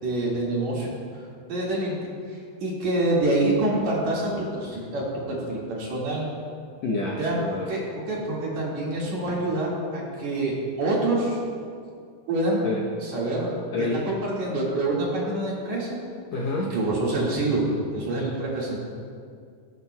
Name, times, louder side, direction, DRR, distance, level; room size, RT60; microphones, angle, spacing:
voice 1, 0.0-0.9 1.5-6.3 7.2-7.4 7.7-7.8 8.1-11.4 12.3-12.7 13.0-13.5 13.8-16.0 16.7-17.6 17.9-18.8, right 2 dB, 55° right, -5 dB, 2.9 m, -26 dB
voice 2, 6.8-7.7 12.6-12.8 13.7-14.1 16.3-16.8, left 2 dB, 75° left, -2 dB, 1.6 m, -28 dB
19.0 x 9.5 x 2.2 m, 2.2 s
omnidirectional pair, 4.2 m